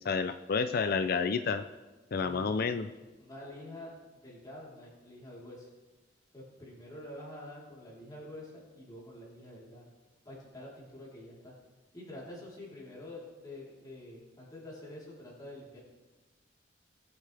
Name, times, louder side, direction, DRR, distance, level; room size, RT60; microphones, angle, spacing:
voice 1, 0.0-1.6 2.1-2.9, left 5 dB, 55° left, 10 dB, 0.4 m, -30 dB
voice 2, 2.2-2.9 3.2-3.9 4.2-5.7 6.3-9.9 10.3-11.5 11.9-15.8, left 1 dB, 25° left, -6 dB, 3.8 m, -47 dB
19.5 x 8.3 x 3.4 m, 1.2 s
head